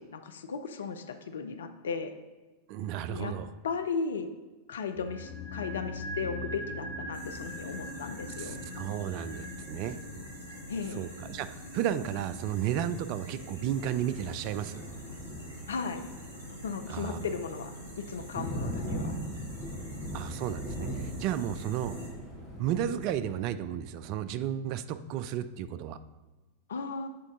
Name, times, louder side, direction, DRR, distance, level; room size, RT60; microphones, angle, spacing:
voice 1, 0.0-2.1 3.1-3.3 3.6-4.3 4.7-8.6 10.7-11.1 15.7-16.1 16.5-17.7 18.1-19.1 26.7-27.1, left 5 dB, 65° left, 8 dB, 0.4 m, -36 dB
voice 2, 2.7-3.5 8.4-10.0 10.9-14.8 16.9-17.2 20.1-22.0 22.6-26.0, right 10 dB, 45° right, 12 dB, 0.3 m, -33 dB
sound 1, 5.0-15.2 15.5-15.6, left 1 dB, 40° left, 1.2 m, -42 dB
sound 2, 7.1-22.1, equal, 75° right, 1.9 m, -46 dB
Thunder, 13.7-23.3, equal, 5° left, 1.9 m, -40 dB
7.5 x 3.6 x 3.7 m, 1.2 s
figure-of-eight pair, 90°, 0 cm